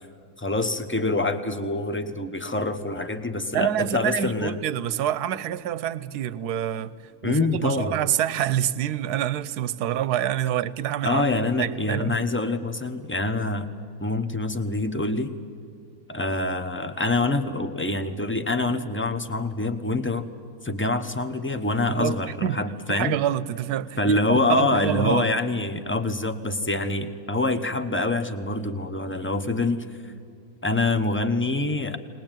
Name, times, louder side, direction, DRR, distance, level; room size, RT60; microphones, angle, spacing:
voice 1, 0.4-4.5 7.2-8.0 11.0-13.7 14.0-15.3 16.1-20.3 20.6-23.2 24.0-30.1 30.6-32.0, left 2 dB, 10° left, 0.7 m, -25 dB
voice 2, 3.5-6.9 7.2-11.2 11.6-12.2 21.9-22.6 22.9-25.3, right 11 dB, 70° right, 1.2 m, -27 dB
21.0 x 20.5 x 9.0 m
omnidirectional pair, 1.8 m